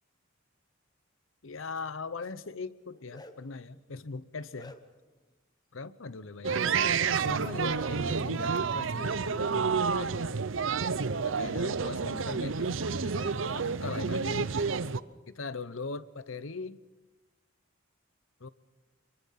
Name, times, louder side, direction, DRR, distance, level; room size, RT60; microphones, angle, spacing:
voice 1, 1.4-4.7 5.7-6.8 7.2-10.4 11.2-14.5 15.3-16.8 18.4-18.5, left 4 dB, 75° left, 16 dB, 0.8 m, -41 dB
Bark, 2.8-3.6 4.1-5.1 6.4-6.7 7.7-7.9 9.3-9.5 9.7-9.9 10.8-10.9 11.3-12.2, left 2 dB, 20° left, 1.2 m, -52 dB
sound 1, 6.4-15.0, right 5 dB, 70° right, 0.7 m, -29 dB
24.5 x 23.5 x 5.8 m, 1.1 s
head